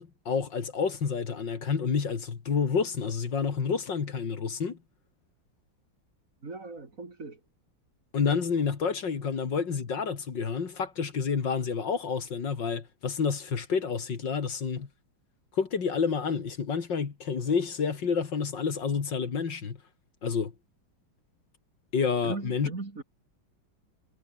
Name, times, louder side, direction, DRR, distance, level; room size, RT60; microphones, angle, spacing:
voice 1, 0.0-4.8 8.1-14.9 15.5-19.8 20.2-20.5 21.9-22.7, left 6 dB, 65° left, 2.8 m, -29 dB
voice 2, 6.4-7.4 22.2-23.0, right 3 dB, 40° right, 3.2 m, -38 dB
omnidirectional pair, 2.2 m